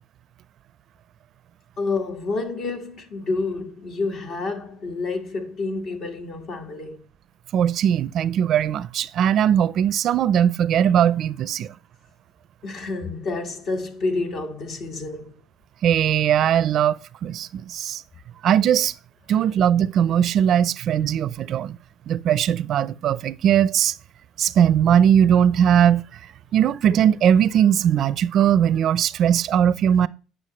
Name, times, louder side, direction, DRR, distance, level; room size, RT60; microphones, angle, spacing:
voice 1, 1.8-7.0 12.6-15.4, left 3 dB, 55° left, 1.6 m, -29 dB
voice 2, 7.5-11.7 15.8-18.0 18.4-18.9 19.3-21.8 22.1-23.9 24.4-26.0 26.5-30.1, right 9 dB, 55° right, 0.4 m, -19 dB
9.2 x 6.2 x 3.0 m
cardioid pair, 105°, 0 cm